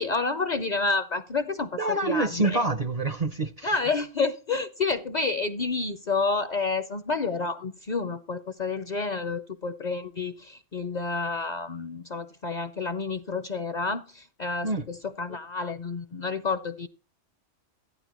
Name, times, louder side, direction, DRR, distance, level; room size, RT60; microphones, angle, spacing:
voice 1, 0.0-2.6 3.6-16.9, left 4 dB, 50° left, 0.6 m, -29 dB
voice 2, 1.8-3.8 14.6-14.9, right 2 dB, 45° right, 0.6 m, -27 dB
14.0 x 9.7 x 3.0 m
omnidirectional pair, 1.2 m